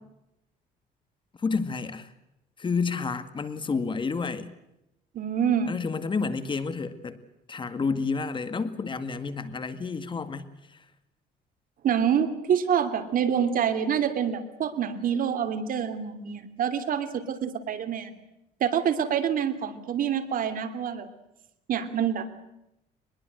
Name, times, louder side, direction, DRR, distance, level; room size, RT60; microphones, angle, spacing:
voice 1, 1.4-2.1 2.6-4.5 5.7-7.2 7.5-10.5, left 4 dB, 30° left, 11 dB, 2.0 m, -30 dB
voice 2, 5.1-5.7 11.8-18.1 18.6-21.1 21.7-22.3, right 8 dB, 55° right, 9 dB, 2.9 m, -26 dB
24.0 x 21.5 x 7.8 m, 0.86 s
cardioid pair, 110°, 17 cm